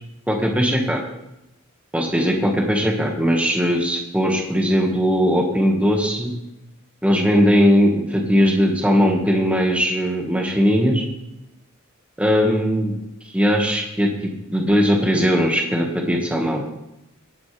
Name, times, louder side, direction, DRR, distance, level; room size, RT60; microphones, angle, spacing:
voice 1, 0.3-1.0 1.9-6.3 7.0-11.0 12.2-12.9 13.3-14.1 14.5-16.6, equal, 5° right, 0 dB, 1.9 m, -19 dB
18.0 x 10.5 x 3.5 m, 0.89 s
head